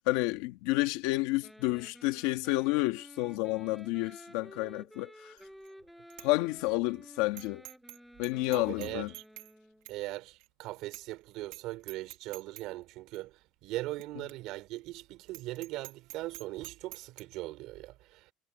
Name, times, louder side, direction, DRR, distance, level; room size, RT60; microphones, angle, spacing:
voice 1, 0.1-5.4 6.2-7.6 8.2-9.1, left 20 dB, 90° left, 1.7 m, -30 dB
Wind instrument woodwind instrument, 1.4-9.9, equal, ahead, 6.0 m, -53 dB
Bicycle bell, 5.4-5.7 6.1-6.3 6.7-6.8 7.4-8.0 8.2-9.5 9.9-10.0 10.4-10.5 10.9-11.2 11.5-11.6 11.9-12.7 13.1-13.2 14.0-14.1 14.3-14.4 14.8-14.9 15.3-17.2, right 19 dB, 80° right, 2.1 m, -47 dB
voice 2, 8.5-9.2 9.9-18.3, right 18 dB, 55° right, 4.5 m, -40 dB
cardioid pair, 175°, 0 cm